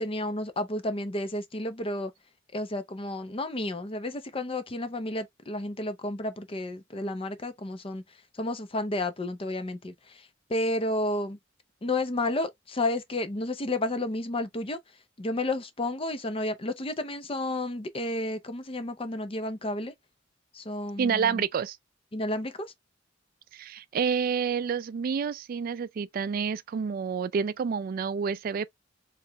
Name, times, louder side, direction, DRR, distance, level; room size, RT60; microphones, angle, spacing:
voice 1, 0.0-2.1 2.5-8.0 8.4-10.2 10.5-11.4 11.8-14.8 15.2-19.9 20.5-21.4 22.1-22.7, left 1 dB, 30° left, 0.6 m, -31 dB
voice 2, 21.0-21.8 23.5-28.7, right 6 dB, 50° right, 0.3 m, -29 dB
4.6 x 3.1 x 2.3 m
head